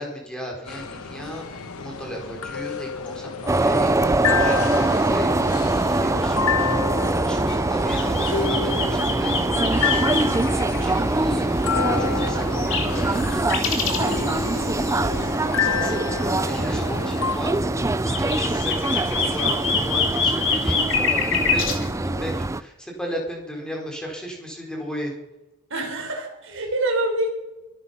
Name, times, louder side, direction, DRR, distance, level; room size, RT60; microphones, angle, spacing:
voice 1, 0.0-17.6 18.1-25.1, equal, 5° left, 0 dB, 4.7 m, -36 dB
sound 1, 0.7-17.4, left 6 dB, 75° left, 1.2 m, -30 dB
sound 2, 3.5-22.6, right 2 dB, 15° right, 0.4 m, -23 dB
sound 3, 7.9-11.3 11.6-11.7 12.2-15.3 15.6-15.9 16.5-16.7 17.3-17.4 17.8-21.8, left 5 dB, 60° left, 3.0 m, -26 dB
voice 2, 25.7-27.3, right 2 dB, 60° right, 2 dB, 5.1 m, -25 dB
23.5 x 9.9 x 5.8 m, 0.98 s
head